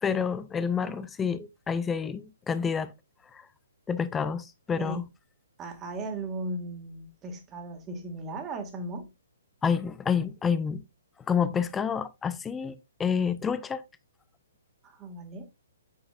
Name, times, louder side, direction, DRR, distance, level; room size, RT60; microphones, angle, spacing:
voice 1, 0.0-2.9 3.3-3.5 3.9-5.1 9.6-10.8 11.3-13.8, left 6 dB, 10° left, 0.5 m, -28 dB
voice 2, 5.6-9.1 14.8-15.5, right 2 dB, 20° right, 1.9 m, -37 dB
8.6 x 7.0 x 2.5 m
figure-of-eight pair, 125°, 0 cm